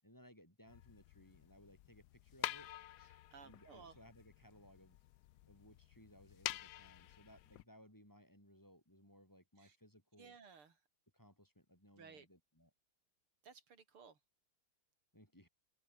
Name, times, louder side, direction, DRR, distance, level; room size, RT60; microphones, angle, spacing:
voice 1, 0.0-2.7 3.4-5.0 5.5-10.3 11.1-12.7 15.1-15.5, equal, 10° left, 6.9 m, -63 dB
sound 1, 0.7-7.6, left 14 dB, 75° left, 0.9 m, -49 dB
voice 2, 3.0-4.0 9.6-9.8 10.2-10.8 12.0-12.3 13.4-14.2, right 5 dB, 80° right, 3.9 m, -58 dB
open air
omnidirectional pair, 2.4 m